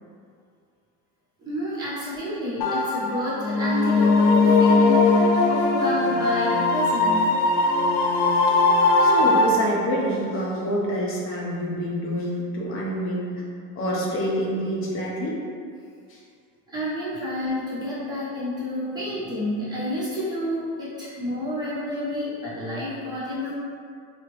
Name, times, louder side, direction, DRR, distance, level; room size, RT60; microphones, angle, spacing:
voice 1, 1.4-7.2 16.7-23.5, left 1 dB, 10° right, -11 dB, 1.0 m, -29 dB
sound 1, 2.6-9.5, left 3 dB, 90° left, 0.6 m, -19 dB
voice 2, 9.0-13.4 13.8-15.4 16.1-16.2, equal, 40° left, -4 dB, 0.6 m, -27 dB
2.9 x 2.4 x 3.1 m, 2.3 s
cardioid pair, 150°, 34 cm